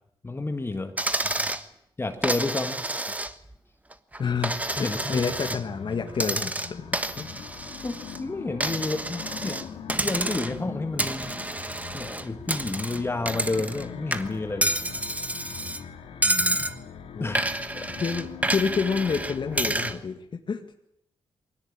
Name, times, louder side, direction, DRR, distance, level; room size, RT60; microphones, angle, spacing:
voice 1, 0.2-1.0 2.0-2.8 4.8-5.3 7.8-9.7 10.0-11.4 11.9-14.7 17.2-18.0, left 3 dB, 25° left, 7 dB, 1.6 m, -30 dB
Coin (dropping), 1.0-1.6 2.2-3.5 3.9-5.6 6.1-8.2 8.6-9.6 9.9-10.6 11.0-13.8 14.1-15.8 16.2-16.8 17.3-20.0, right 1 dB, 15° right, 1.4 m, -29 dB
sound 1, 4.2-19.9, left 7 dB, 85° left, 3.5 m, -42 dB
voice 2, 4.2-6.9 7.2-7.3 16.2-16.6 17.1-17.4 18.0-20.7, left 5 dB, 55° left, 5 dB, 1.8 m, -29 dB
22.0 x 18.0 x 8.8 m, 0.75 s
cardioid pair, 75°, 10 cm